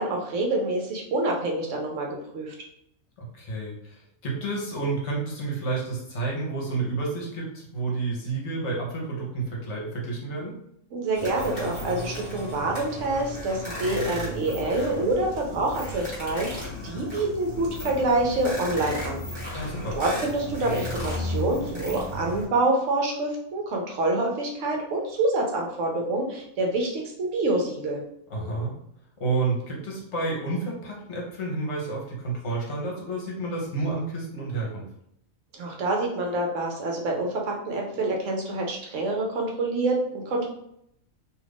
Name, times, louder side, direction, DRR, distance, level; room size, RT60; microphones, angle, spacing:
voice 1, 0.0-2.5 10.9-19.2 19.5-19.7 19.9-28.0 35.5-40.5, right 2 dB, 70° right, 0 dB, 1.0 m, -27 dB
voice 2, 3.2-7.5 7.7-10.6 19.5-20.0 28.3-28.7 29.2-34.9, right 3 dB, 60° left, -3 dB, 1.1 m, -30 dB
sound 1, 11.1-22.5, left 1 dB, 20° left, 1.2 m, -34 dB
2.7 x 2.4 x 3.4 m, 0.75 s
omnidirectional pair, 1.4 m